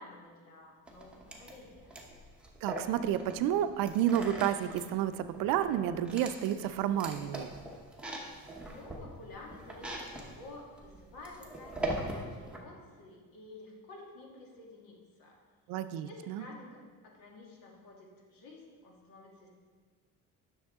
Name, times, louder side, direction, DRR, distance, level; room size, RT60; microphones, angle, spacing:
voice 1, 0.0-2.0 8.6-15.4 16.1-19.5, left 2 dB, 75° left, -1 dB, 2.0 m, -51 dB
sound 1, 0.9-12.6, right 1 dB, 5° right, 0.9 m, -42 dB
voice 2, 2.6-7.5 15.7-16.4, right 10 dB, 70° right, 11 dB, 0.5 m, -30 dB
10.5 x 6.5 x 3.6 m, 1.5 s
cardioid pair, 155°, 35 cm